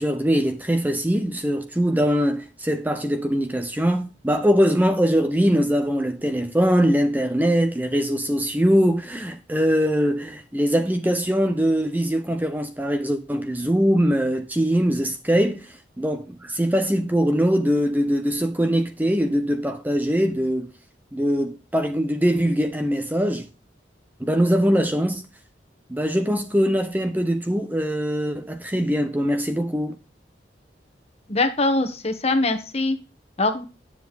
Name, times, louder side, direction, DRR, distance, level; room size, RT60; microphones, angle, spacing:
voice 1, 0.0-20.7 21.1-23.5 24.2-25.2 25.9-30.0, equal, 10° right, 0.8 m, -22 dB
voice 2, 31.3-33.0 33.4-33.6, left 2 dB, 35° left, 1.4 m, -22 dB
10.0 x 7.3 x 4.1 m
head